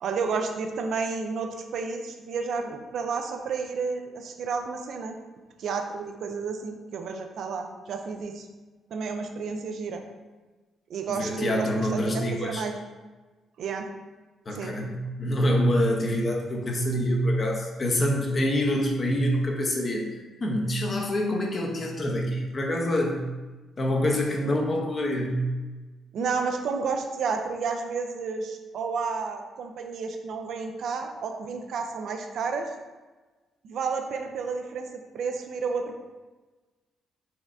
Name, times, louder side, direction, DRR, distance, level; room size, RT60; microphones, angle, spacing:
voice 1, 0.0-5.1 5.6-8.5 8.9-10.0 10.9-12.7 13.6-13.9 14.5-14.8 26.1-32.7 33.6-36.0, right 5 dB, 70° right, 4 dB, 0.4 m, -31 dB
voice 2, 11.1-12.7 14.5-20.1 20.4-23.3 23.8-25.5, equal, 35° left, 1 dB, 0.7 m, -26 dB
4.3 x 3.4 x 2.5 m, 1.2 s
cardioid pair, 90°, 0 cm